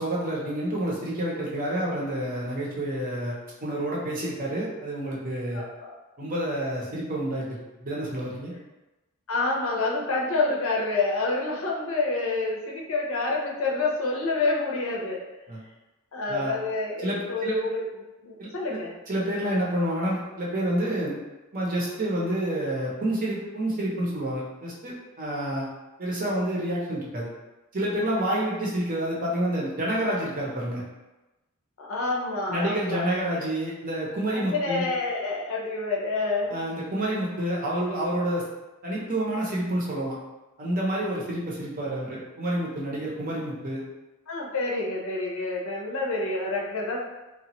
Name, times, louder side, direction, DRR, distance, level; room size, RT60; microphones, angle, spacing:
voice 1, 0.0-3.4 3.6-5.6 6.2-8.5 15.5-15.6 16.3-16.6 17.0-17.5 18.4-18.5 19.1-21.1 21.5-25.7 26.0-27.3 27.7-30.8 32.5-34.8 36.5-38.4 38.8-40.2 40.6-43.8, right 1 dB, 40° right, -5 dB, 0.7 m, -28 dB
voice 2, 5.5-5.9 9.3-15.2 16.1-17.8 18.2-18.9 31.8-33.1 34.3-36.6 44.3-47.0, left 3 dB, 65° left, -2 dB, 0.6 m, -28 dB
2.9 x 2.2 x 2.9 m, 1.1 s
head